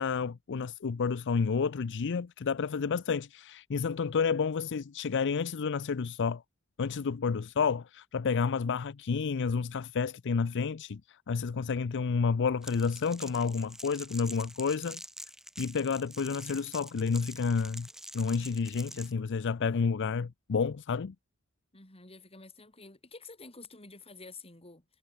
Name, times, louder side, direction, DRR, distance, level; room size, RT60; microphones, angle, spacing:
voice 1, 0.0-6.4 6.8-15.0 15.6-17.9 18.1-21.1, left 5 dB, 60° left, 0.5 m, -30 dB
Crackle, 12.6-19.1, right 1 dB, ahead, 5.1 m, -46 dB
voice 2, 21.7-24.8, left 3 dB, 30° left, 4.6 m, -49 dB
head